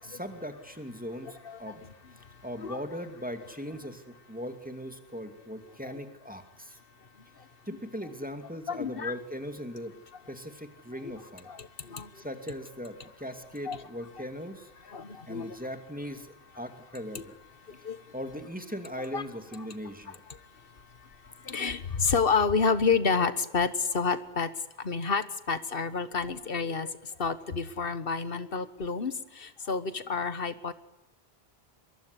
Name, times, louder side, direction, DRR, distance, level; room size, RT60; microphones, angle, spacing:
voice 1, 0.0-1.8 2.4-6.8 7.7-9.9 10.3-11.5 12.1-14.7 15.3-17.3 18.1-20.2, equal, 10° right, 6 dB, 2.5 m, -39 dB
voice 2, 1.4-2.8 7.0-7.5 8.7-9.2 11.0-12.3 13.6-13.8 14.8-15.6 17.1-17.2 17.6-18.1 19.1-19.2 19.6-19.7 20.0-30.7, left 5 dB, 65° left, 13 dB, 1.6 m, -30 dB
24.0 x 22.5 x 9.8 m, 0.92 s
omnidirectional pair, 1.0 m